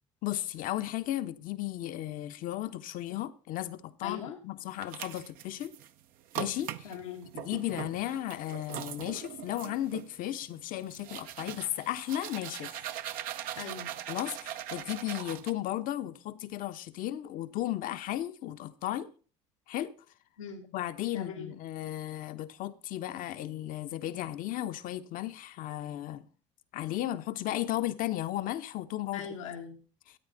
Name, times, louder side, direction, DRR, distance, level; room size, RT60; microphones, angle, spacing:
voice 1, 0.2-5.7 6.4-6.9 7.3-12.7 14.1-19.1 19.7-19.9 20.7-26.2 26.7-29.3, left 13 dB, 60° left, 1.0 m, -35 dB
voice 2, 4.0-4.4 6.8-7.3 13.6-13.9 20.4-20.7 21.1-21.5 29.1-29.8, left 7 dB, 85° left, 1.5 m, -40 dB
sound 1, 4.7-5.9 6.3-15.5, right 11 dB, 65° right, 0.8 m, -41 dB
13.5 x 9.0 x 4.0 m
hypercardioid pair, 60°, 16 cm